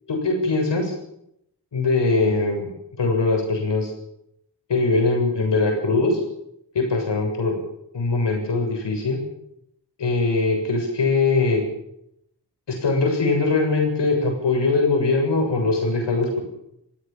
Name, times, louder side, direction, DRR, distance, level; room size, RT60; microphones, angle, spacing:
voice 1, 0.1-0.9 1.7-2.7 3.0-3.9 4.7-6.2 6.7-7.5 7.9-9.2 10.0-11.6 12.7-16.4, left 3 dB, 75° left, 2 dB, 7.3 m, -21 dB
22.5 x 16.0 x 7.2 m, 0.78 s
wide cardioid pair, 80°, 42 cm